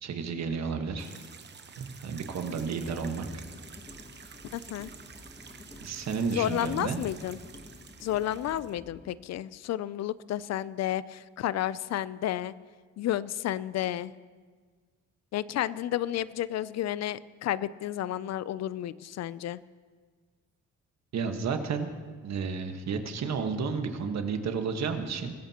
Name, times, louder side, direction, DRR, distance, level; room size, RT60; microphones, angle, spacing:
voice 1, 0.0-1.1 1.8-3.4 5.8-7.0 21.1-21.9 22.2-25.3, right 5 dB, 60° right, 6 dB, 1.4 m, -32 dB
sound 1, 1.0-8.7, right 6 dB, 35° right, 1.0 m, -50 dB
sound 2, 2.8-9.1, left 2 dB, 15° left, 1.2 m, -51 dB
voice 2, 4.5-4.9 6.3-7.4 8.0-12.5 13.0-14.1 15.3-19.6, left 12 dB, 60° left, 18 dB, 0.5 m, -31 dB
24.0 x 14.0 x 2.9 m, 1.5 s
cardioid pair, 90°, 30 cm